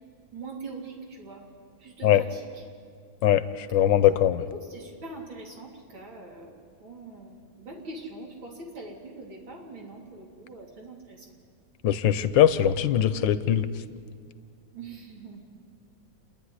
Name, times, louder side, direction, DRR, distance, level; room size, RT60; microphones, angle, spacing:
voice 1, 0.3-1.4 1.8-2.4 4.7-6.5 6.8-7.3 7.6-11.2 14.7-15.4, right 3 dB, 85° right, -1 dB, 4.1 m, -42 dB
voice 2, 3.7-4.4 11.8-13.7, left 11 dB, 75° left, 14 dB, 1.4 m, -21 dB
29.5 x 11.0 x 9.7 m, 2.1 s
omnidirectional pair, 2.1 m